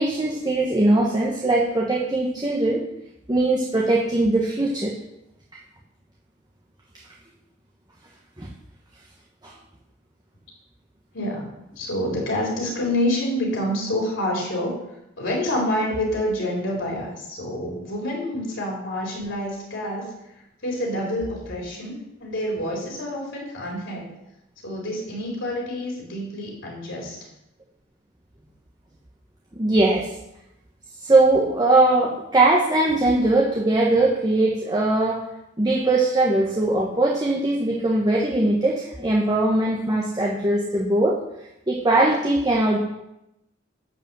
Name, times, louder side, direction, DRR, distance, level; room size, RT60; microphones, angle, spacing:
voice 1, 0.0-2.8 3.3-4.9 8.4-8.5 9.4-9.5 29.5-30.1 31.0-35.2 35.6-41.2 41.7-42.8, right 2 dB, 20° right, -2 dB, 1.2 m, -20 dB
voice 2, 11.1-11.5 11.8-14.8 15.2-20.1 20.6-24.1 24.6-27.2, left 1 dB, 70° left, -3 dB, 4.1 m, -27 dB
11.0 x 5.3 x 7.7 m, 0.86 s
head